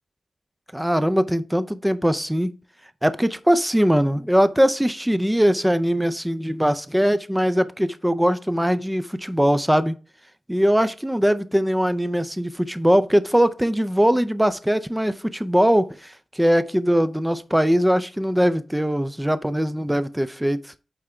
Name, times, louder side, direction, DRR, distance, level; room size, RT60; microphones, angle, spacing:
voice 1, 0.7-2.5 3.0-9.9 10.5-20.6, equal, 5° right, 0.4 m, -21 dB
8.7 x 3.4 x 4.3 m
wide cardioid pair, 165°, 0 cm